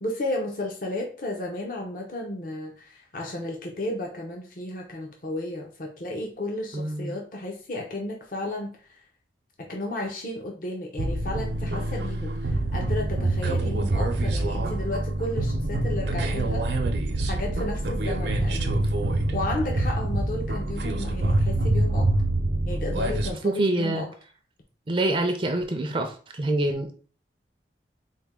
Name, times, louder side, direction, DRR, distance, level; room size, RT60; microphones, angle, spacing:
voice 1, 0.0-9.0 9.6-16.7 17.2-18.7 19.3-22.1 22.7-24.1, left 2 dB, 50° left, 0 dB, 0.6 m, -33 dB
voice 2, 6.7-7.1 19.7-19.9 23.4-24.0 24.9-26.9, right 2 dB, 30° right, 4 dB, 0.4 m, -26 dB
sound 1, 11.0-23.3, right 2 dB, 75° right, 0.6 m, -26 dB
4.2 x 2.1 x 3.5 m, 0.40 s
head